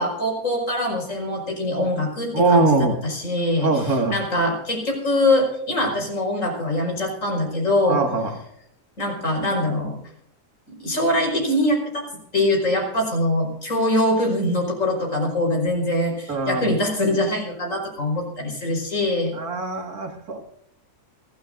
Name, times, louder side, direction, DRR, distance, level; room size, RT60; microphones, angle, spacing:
voice 1, 0.0-8.0 9.0-10.0 10.7-12.1 12.3-19.3, left 1 dB, 55° left, 1 dB, 5.7 m, -23 dB
voice 2, 2.3-3.0 3.6-4.2 7.9-8.3 16.3-16.7 19.3-20.4, right 3 dB, 75° right, 4 dB, 2.5 m, -21 dB
29.5 x 12.5 x 2.6 m, 0.73 s
omnidirectional pair, 1.6 m